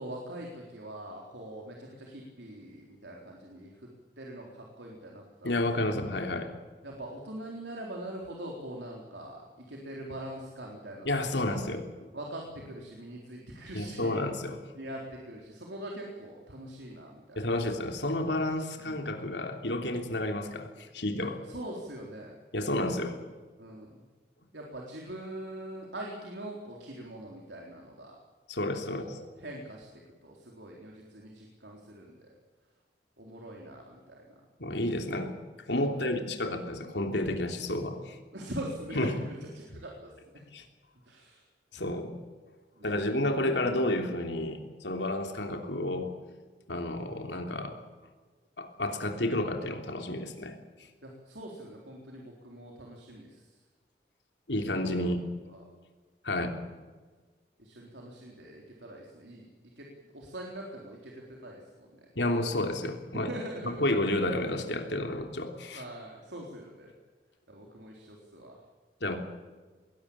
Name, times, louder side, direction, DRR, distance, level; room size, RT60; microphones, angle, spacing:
voice 1, 0.0-3.9 4.2-5.5 5.9-6.0 6.8-11.7 12.1-14.3 14.8-17.4 18.8-19.0 21.2-22.4 23.6-24.0 24.5-28.2 28.9-32.3 33.2-34.2 35.9-36.0 38.3-40.4 41.1-41.4 41.8-41.9 42.8-43.2 51.0-53.4 55.0-55.1 55.5-55.6 56.3-56.5 57.6-59.5 59.8-59.9 60.1-62.1 63.1-63.8 65.7-66.9 67.5-68.6, right 1 dB, 90° right, -1 dB, 3.9 m, -43 dB
voice 2, 5.4-6.5 11.0-11.9 13.7-14.6 17.3-21.4 22.5-23.2 28.5-29.2 34.6-35.4 35.7-38.2 38.9-39.2 39.7-39.8 40.5-40.6 41.7-42.1 42.8-46.1 46.7-47.8 48.6-50.5 54.5-55.2 56.2-56.5 62.1-63.3 63.6-65.8 69.0-69.2, left 1 dB, 90° left, 4 dB, 3.2 m, -31 dB
21.5 x 17.5 x 8.7 m, 1.4 s
head